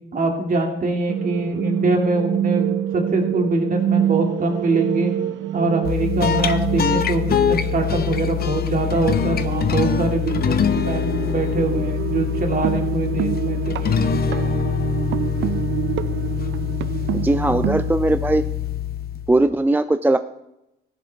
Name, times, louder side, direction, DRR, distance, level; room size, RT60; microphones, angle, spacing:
voice 1, 0.1-5.1 5.5-14.1, right 2 dB, 45° right, 2 dB, 2.4 m, -23 dB
sound 1, 1.1-17.9, right 12 dB, 70° right, 0.4 m, -27 dB
sound 2, 5.8-19.4, left 9 dB, 50° left, 0.8 m, -24 dB
voice 2, 17.1-18.4 19.3-20.2, right 2 dB, 10° right, 11 dB, 0.4 m, -19 dB
15.5 x 11.0 x 3.5 m, 0.89 s
cardioid pair, 90°, 20 cm